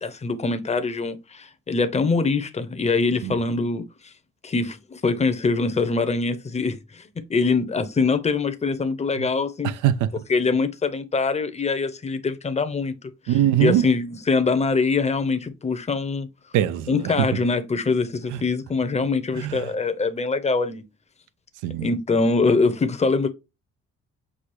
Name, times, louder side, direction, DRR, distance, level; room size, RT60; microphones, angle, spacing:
voice 1, 0.0-4.1 4.4-9.7 10.3-13.0 13.3-16.3 16.9-20.8 21.8-23.3, left 4 dB, 20° left, 0.6 m, -23 dB
voice 2, 9.6-10.1 13.3-13.8 16.5-17.1 19.4-19.6 21.6-21.9, right 11 dB, 90° right, 0.5 m, -22 dB
6.1 x 2.3 x 3.2 m
cardioid pair, 90°, 30 cm